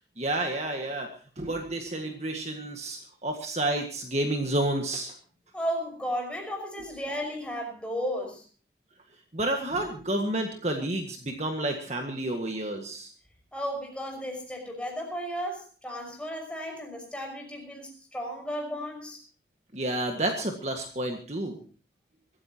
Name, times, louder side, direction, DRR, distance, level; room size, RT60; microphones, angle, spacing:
voice 1, 0.2-5.1 6.8-6.9 9.3-13.1 19.7-21.6, right 1 dB, 40° right, 3 dB, 1.8 m, -30 dB
voice 2, 5.5-8.4 13.5-19.2, equal, 5° left, 1 dB, 5.8 m, -34 dB
24.0 x 14.5 x 3.0 m, 0.37 s
head